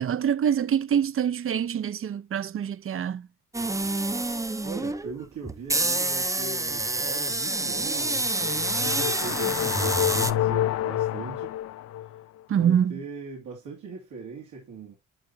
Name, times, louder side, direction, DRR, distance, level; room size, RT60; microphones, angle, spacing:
voice 1, 0.0-3.3 12.5-13.0, right 8 dB, 45° right, 0.7 m, -25 dB
sound 1, 3.5-10.3, right 2 dB, 10° right, 0.7 m, -27 dB
voice 2, 4.6-11.5 12.5-14.9, right 4 dB, 80° right, 2.9 m, -40 dB
sound 2, 7.9-12.2, left 13 dB, 55° left, 0.5 m, -28 dB
11.0 x 4.7 x 2.7 m
cardioid pair, 90°, 30 cm